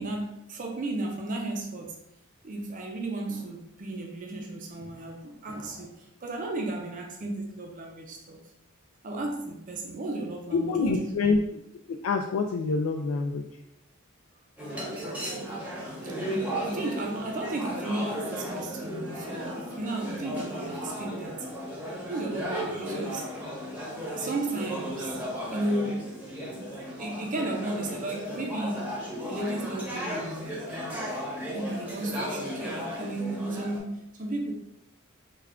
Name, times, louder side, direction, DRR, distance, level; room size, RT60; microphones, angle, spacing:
voice 1, 0.0-2.0 2.4-8.4 9.0-11.1 16.2-21.5 22.1-23.3 24.1-25.2 25.5-26.1 26.6-28.8 29.3-30.8 31.5-34.5, right 2 dB, 40° right, 1 dB, 0.5 m, -34 dB
voice 2, 10.5-11.6 11.9-13.5, left 4 dB, 75° left, 2 dB, 0.3 m, -26 dB
sound 1, 14.6-33.8, equal, 5° right, 0.7 m, -35 dB
3.3 x 2.3 x 3.5 m, 0.79 s
head